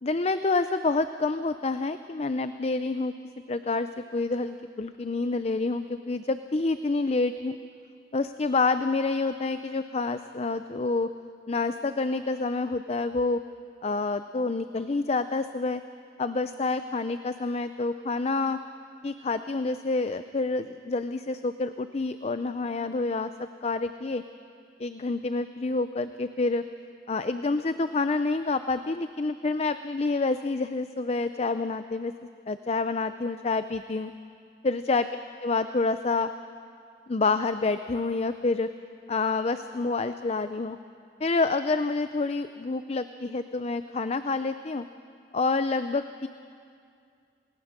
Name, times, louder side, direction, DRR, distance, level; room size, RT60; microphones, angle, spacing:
voice 1, 0.0-3.1 3.5-7.6 8.1-11.1 11.5-13.4 13.8-15.8 16.2-18.6 19.0-24.2 24.8-26.6 27.1-32.1 32.5-34.1 34.6-35.1 35.4-36.3 37.1-38.7 39.1-40.8 41.2-44.9 45.3-46.3, left 3 dB, 35° left, 10 dB, 0.5 m, -28 dB
28.0 x 19.5 x 6.7 m, 2.3 s
head